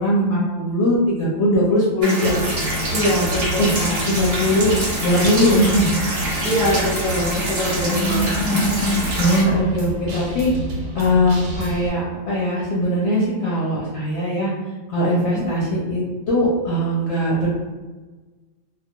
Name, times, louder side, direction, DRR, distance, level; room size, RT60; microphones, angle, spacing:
voice 1, 0.0-2.6 3.6-3.7 4.1-4.7 5.0-6.1 7.9-8.6 9.2-10.5 10.9-14.5 14.9-17.5, equal, 65° left, -6 dB, 0.8 m, -20 dB
sound 1, 2.0-9.4, right 1 dB, 55° right, 0.8 m, -26 dB
Guitar, 2.2-11.9, right 1 dB, 85° right, 1.0 m, -29 dB
voice 2, 2.9-4.0 6.4-9.5 15.1-15.5, left 1 dB, 10° left, -9 dB, 0.9 m, -24 dB
2.2 x 2.1 x 2.7 m, 1.3 s
omnidirectional pair, 1.4 m